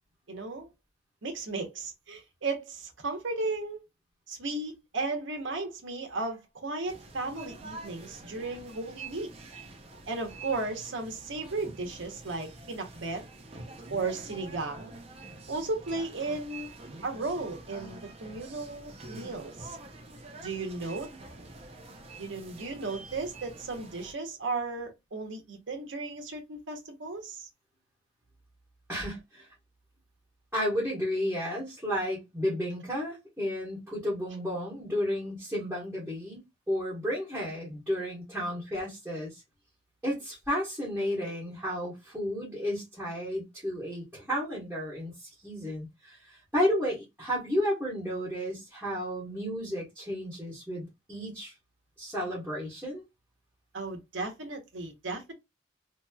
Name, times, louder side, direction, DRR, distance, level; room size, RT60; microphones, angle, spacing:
voice 1, 0.3-0.7 1.2-3.8 4.3-9.3 10.1-13.2 13.9-14.9 15.5-16.7 17.0-19.8 20.4-21.1 22.2-27.5 53.7-55.3, right 3 dB, 85° right, 0.9 m, -35 dB
sound 1, 6.9-24.1, right 2 dB, 30° right, 0.5 m, -47 dB
voice 2, 28.9-29.5 30.5-36.4 36.7-39.4 40.0-51.5 52.0-53.0, equal, 5° right, 1.2 m, -32 dB
3.0 x 2.9 x 2.2 m
head